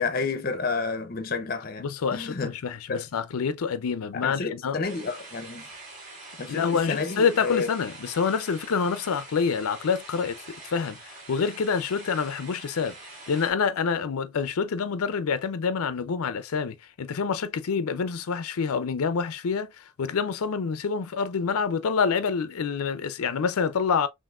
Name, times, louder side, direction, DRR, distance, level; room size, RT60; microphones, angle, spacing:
voice 1, 0.0-1.8 2.1-2.5 2.9-3.0 4.1-5.6 6.4-7.7, left 4 dB, 40° left, 0.6 m, -30 dB
voice 2, 1.8-4.8 6.5-10.4 10.6-12.9 13.3-24.1, left 5 dB, 90° left, 0.5 m, -27 dB
sound 1, 4.8-13.5, right 2 dB, 40° right, 2.2 m, -45 dB
5.8 x 2.6 x 2.4 m
head